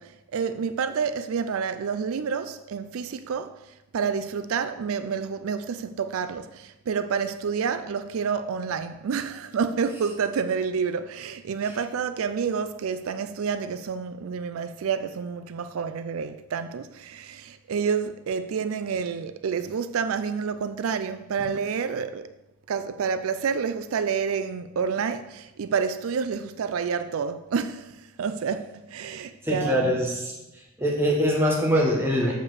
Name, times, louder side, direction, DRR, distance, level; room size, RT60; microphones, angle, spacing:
voice 1, 0.0-3.6 3.9-22.3 22.7-30.0, right 6 dB, 80° right, 0.4 m, -29 dB
voice 2, 29.4-30.2 30.8-32.4, equal, 10° right, 1.7 m, -23 dB
7.0 x 5.1 x 6.5 m
head